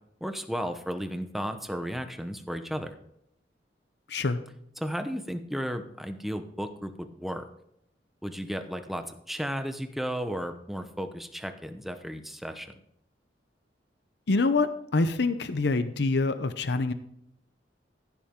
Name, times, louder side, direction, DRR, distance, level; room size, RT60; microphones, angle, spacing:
voice 1, 0.2-2.9 4.8-7.5 8.2-12.7, equal, ahead, 8 dB, 0.9 m, -34 dB
voice 2, 4.1-4.4 14.3-16.9, left 3 dB, 65° left, 11 dB, 0.7 m, -26 dB
15.5 x 7.3 x 3.7 m, 0.75 s
head